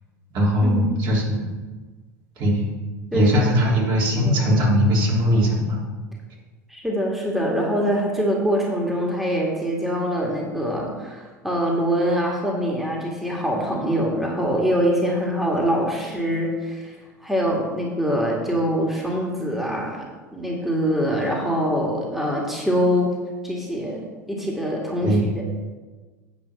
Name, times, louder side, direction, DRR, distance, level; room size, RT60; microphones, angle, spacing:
voice 1, 0.3-1.4 2.4-2.6 3.1-5.8 25.0-25.2, equal, 50° right, -3 dB, 3.3 m, -20 dB
voice 2, 6.7-16.9 17.2-20.1 20.3-23.2 23.4-25.4, equal, 5° right, -2 dB, 2.1 m, -24 dB
9.1 x 5.1 x 7.0 m, 1.3 s
hypercardioid pair, 85°, 10 cm